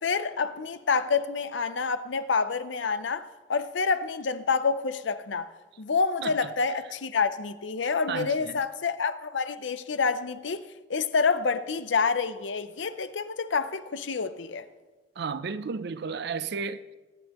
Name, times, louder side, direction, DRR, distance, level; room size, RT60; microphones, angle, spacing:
voice 1, 0.0-5.5 5.8-14.7, left 5 dB, 70° left, 0.6 m, -28 dB
voice 2, 8.1-8.6 15.2-17.0, right 5 dB, 60° right, 0.5 m, -33 dB
23.0 x 9.6 x 3.0 m
head